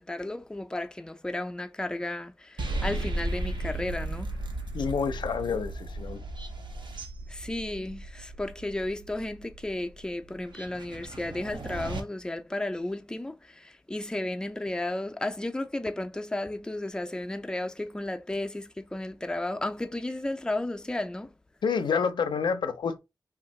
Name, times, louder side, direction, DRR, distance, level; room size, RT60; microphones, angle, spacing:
voice 1, 0.0-4.4 7.3-21.3, left 1 dB, 10° left, 0.3 m, -33 dB
sound 1, 2.6-12.0, right 2 dB, 90° right, 0.6 m, -36 dB
voice 2, 4.7-6.2 21.6-23.0, left 6 dB, 85° left, 0.4 m, -28 dB
2.7 x 2.3 x 3.0 m
wide cardioid pair, 90°, 8 cm